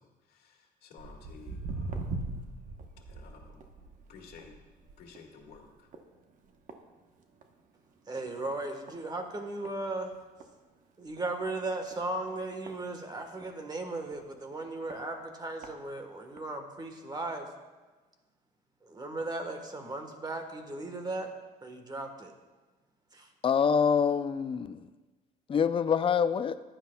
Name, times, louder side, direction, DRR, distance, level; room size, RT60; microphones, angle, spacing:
voice 1, 0.0-2.2 3.1-3.7 4.1-4.6 5.0-5.9, left 5 dB, 65° left, 0 dB, 1.8 m, -53 dB
Walk footsteps, 1.0-7.6 8.0-8.3 8.9-9.0 9.6-9.7 10.1-10.2 10.4-10.5 11.1-11.3 11.9-13.5 14.1-14.2 14.9-15.0 15.4-15.7 16.4-16.5, right 3 dB, 50° right, 1.0 m, -41 dB
voice 2, 8.1-10.1 11.0-17.5 18.8-21.3 21.6-22.3 23.1-23.3, right 2 dB, 25° right, 5 dB, 1.3 m, -36 dB
voice 3, 23.4-24.9 25.5-26.6, left 6 dB, 30° left, 12 dB, 0.4 m, -26 dB
15.0 x 10.0 x 2.3 m, 1.3 s
cardioid pair, 110°, 17 cm